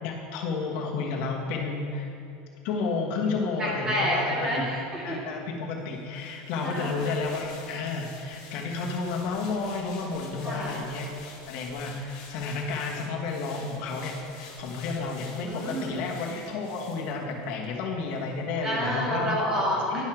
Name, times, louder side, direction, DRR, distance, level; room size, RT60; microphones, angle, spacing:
voice 1, 0.0-2.1 2.6-4.7 5.0-11.1 11.4-19.4 19.9-20.0, left 4 dB, 55° left, 0 dB, 1.4 m, -31 dB
voice 2, 3.6-5.2 6.6-7.0 10.4-10.8 15.4-16.0 18.6-20.0, equal, 20° right, -5 dB, 2.2 m, -29 dB
sound 1, 6.1-17.7 18.1-18.2, left 5 dB, 70° left, 1.8 m, -48 dB
10.5 x 5.7 x 4.5 m, 2.7 s
supercardioid pair, 150°, 3 cm